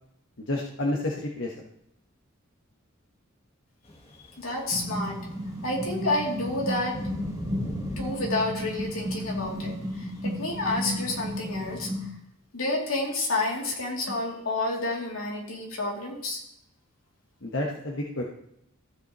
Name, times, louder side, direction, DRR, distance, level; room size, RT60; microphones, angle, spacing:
voice 1, 0.4-1.5 17.4-18.2, left 1 dB, 60° left, -1 dB, 1.2 m, -30 dB
sound 1, 3.8-11.8, left 1 dB, 30° left, 1.3 m, -42 dB
voice 2, 4.4-5.2 5.6-7.0 8.0-11.9 12.5-16.4, left 2 dB, 85° left, -2 dB, 2.8 m, -29 dB
sound 2, 4.7-12.1, equal, 15° right, 1.0 m, -33 dB
14.5 x 8.1 x 3.0 m, 0.76 s
head